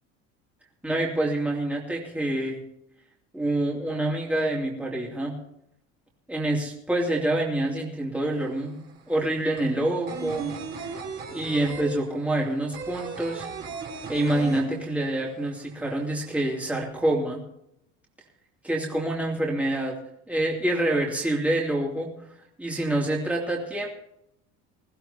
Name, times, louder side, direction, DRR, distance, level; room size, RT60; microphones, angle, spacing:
voice 1, 0.8-2.6 3.3-5.3 6.3-8.8 9.1-10.5 10.8-10.9 11.3-13.5 14.1-17.4 18.6-20.0 20.3-22.1 22.6-23.9, right 1 dB, 5° right, -3 dB, 2.7 m, -26 dB
sound 1, 8.3-8.4 8.7-15.3 15.5-15.6 15.9-16.7, right 6 dB, 35° right, 3.6 m, -36 dB
21.5 x 15.0 x 2.8 m, 0.78 s
cardioid pair, 135°, 30 cm